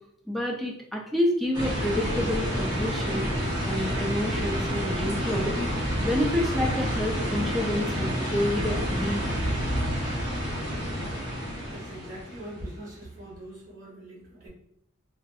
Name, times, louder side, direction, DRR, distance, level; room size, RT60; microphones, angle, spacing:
voice 1, 0.3-3.3 3.7-9.2, left 1 dB, ahead, -1 dB, 0.4 m, -29 dB
sound 1, 1.5-12.7, equal, 20° right, 0.9 m, -29 dB
voice 2, 11.7-14.5, right 1 dB, 40° right, -6 dB, 1.3 m, -42 dB
2.4 x 2.3 x 2.6 m, 0.71 s
head